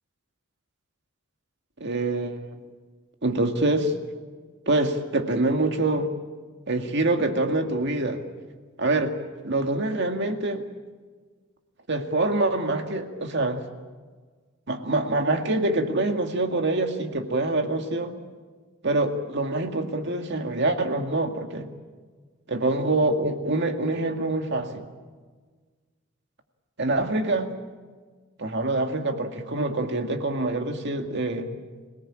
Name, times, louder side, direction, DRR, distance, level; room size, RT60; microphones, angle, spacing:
voice 1, 1.8-2.6 3.2-3.9 4.7-6.1 6.7-8.2 8.8-9.1 9.4-10.6 11.9-13.6 14.7-18.1 18.8-21.7 22.5-24.8 26.8-27.5 28.4-31.5, right 2 dB, 55° right, 5 dB, 2.1 m, -25 dB
26.0 x 18.5 x 8.8 m, 1.5 s
head